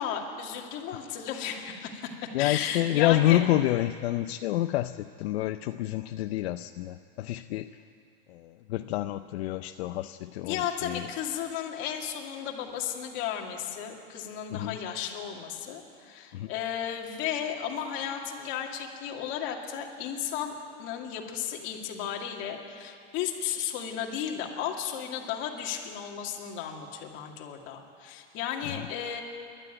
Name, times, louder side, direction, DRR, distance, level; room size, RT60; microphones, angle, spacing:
voice 1, 0.0-3.4 10.4-20.5 20.8-29.2, left 9 dB, 35° left, 1 dB, 2.2 m, -34 dB
voice 2, 2.3-7.8 8.3-11.1 14.5-14.8 16.3-16.5 28.7-28.9, left 14 dB, 70° left, 9 dB, 0.6 m, -28 dB
28.5 x 12.5 x 9.0 m, 2.4 s
supercardioid pair, 170°, 33 cm